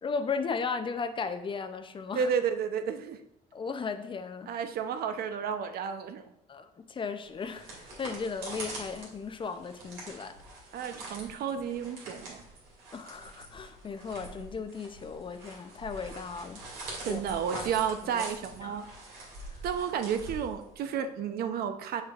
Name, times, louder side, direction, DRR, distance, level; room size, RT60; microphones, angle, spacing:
voice 1, 0.0-2.3 3.5-4.5 6.5-10.4 12.9-17.2 17.5-17.7 18.1-18.2 18.6-18.8 19.5-19.6, left 5 dB, 30° left, 9 dB, 0.5 m, -36 dB
voice 2, 2.1-3.2 4.5-6.3 10.7-12.4 17.1-18.9 19.6-22.0, right 7 dB, 65° right, 9 dB, 0.6 m, -32 dB
sound 1, 7.3-21.0, right 2 dB, 85° right, 2.4 m, -45 dB
6.6 x 6.3 x 2.4 m, 0.80 s
cardioid pair, 110°, 17 cm